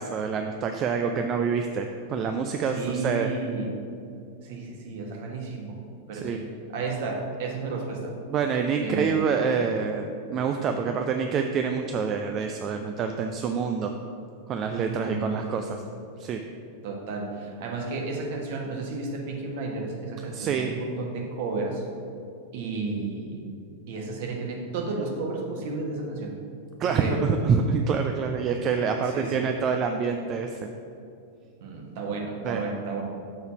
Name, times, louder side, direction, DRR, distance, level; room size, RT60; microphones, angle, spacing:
voice 1, 0.0-3.3 6.1-6.4 8.3-13.9 14.5-15.8 16.2-16.4 20.3-20.7 26.8-30.5 32.4-32.6, right 6 dB, 30° right, 4 dB, 0.4 m, -26 dB
voice 2, 2.7-3.8 4.4-5.8 6.1-6.5 6.7-8.1 8.8-9.3 14.7-15.7 16.8-21.8 22.5-23.4 23.9-26.4 26.9-27.3 29.0-29.5 31.6-33.0, right 3 dB, 50° right, 1 dB, 1.1 m, -32 dB
6.6 x 4.0 x 5.9 m, 2.5 s
figure-of-eight pair, 90°, 0 cm